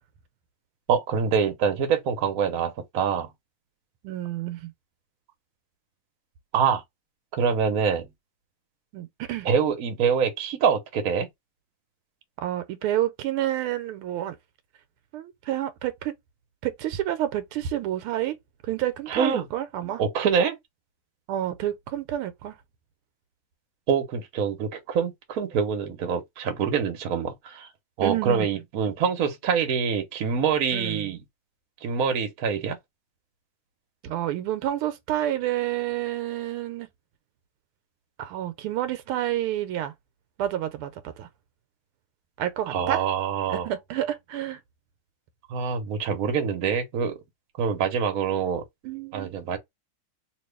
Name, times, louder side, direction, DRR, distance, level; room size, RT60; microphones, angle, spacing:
voice 1, 0.9-3.3 6.5-6.8 7.3-8.1 9.4-11.3 19.1-19.5 20.0-20.6 23.9-27.7 28.0-31.2 31.8-32.8 42.7-43.7 45.5-47.2 47.6-48.6 49.1-49.6, right 6 dB, 55° right, 1.1 m, -25 dB
voice 2, 4.0-4.7 8.9-9.5 12.4-14.4 15.1-16.1 16.6-18.4 18.6-20.0 21.3-22.5 28.0-28.5 30.7-31.1 34.0-36.9 38.2-39.9 40.4-40.9 41.2-41.3 42.4-43.0 43.5-44.6 48.8-49.6, right 12 dB, 80° right, 1.5 m, -29 dB
3.0 x 2.9 x 3.3 m
omnidirectional pair, 2.4 m